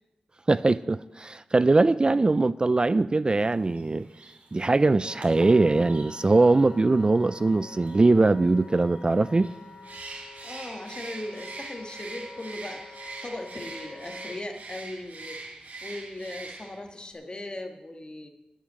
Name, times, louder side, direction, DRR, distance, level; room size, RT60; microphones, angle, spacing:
voice 1, 0.5-4.1 4.5-9.5, right 3 dB, 35° right, 0.4 m, -21 dB
sound 1, 3.3-10.2, right 2 dB, 60° right, 3.0 m, -53 dB
Wind instrument woodwind instrument, 5.0-14.4, left 3 dB, 80° left, 2.2 m, -47 dB
Bird, 9.8-16.9, right 3 dB, 90° right, 3.8 m, -42 dB
voice 2, 10.4-15.4 15.8-18.3, left 1 dB, 35° left, 1.8 m, -38 dB
13.0 x 6.2 x 9.6 m
wide cardioid pair, 85°, 3 cm